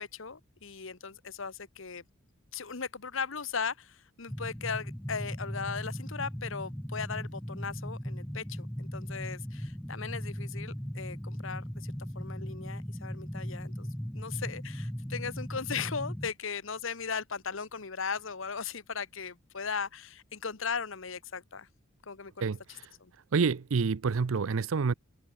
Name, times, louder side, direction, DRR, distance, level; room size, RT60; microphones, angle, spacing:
voice 1, 0.0-2.0 2.5-13.9 14.1-21.7 22.1-22.3 23.0-23.1, left 5 dB, 70° left, 1.2 m, -38 dB
sound 1, 4.3-16.3, equal, 5° left, 1.0 m, -38 dB
voice 2, 22.4-22.9 23.3-24.9, right 5 dB, 80° right, 0.5 m, -28 dB
head